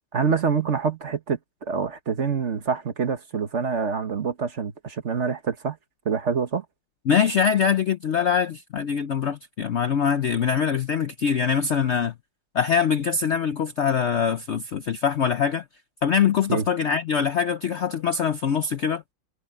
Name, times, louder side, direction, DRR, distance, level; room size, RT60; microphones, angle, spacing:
voice 1, 0.1-5.8 6.0-6.6 16.5-16.6, right 6 dB, 40° right, 1.4 m, -26 dB
voice 2, 7.1-12.1 12.5-15.6 16.0-19.0, left 7 dB, 85° left, 0.6 m, -23 dB
omnidirectional pair, 2.1 m